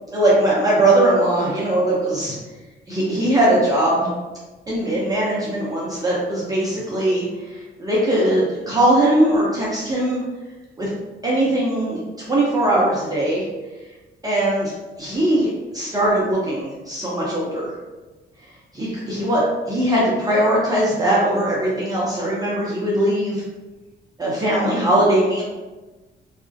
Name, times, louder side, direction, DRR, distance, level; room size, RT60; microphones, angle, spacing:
voice 1, 0.1-2.4 2.9-4.1 4.7-10.2 10.8-10.9 11.2-12.0 12.3-13.4 14.2-14.7 15.0-17.7 18.7-23.4 24.2-25.4, right 1 dB, 20° right, -7 dB, 0.6 m, -20 dB
2.4 x 2.1 x 2.5 m, 1.2 s
cardioid pair, 90°, 20 cm